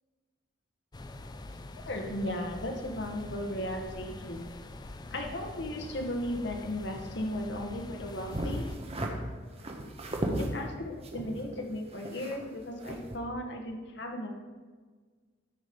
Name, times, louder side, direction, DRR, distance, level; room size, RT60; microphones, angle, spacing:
sound 1, 0.9-8.8, left 2 dB, 20° left, 0.4 m, -44 dB
voice 1, 1.8-4.4 5.1-8.6 10.4-14.3, left 1 dB, 65° left, 2 dB, 1.2 m, -36 dB
sound 2, 8.3-9.1 9.6-10.5 11.0-12.5 12.8-13.2, right 1 dB, 35° right, 1.1 m, -35 dB
13.0 x 5.1 x 5.3 m, 1.5 s
head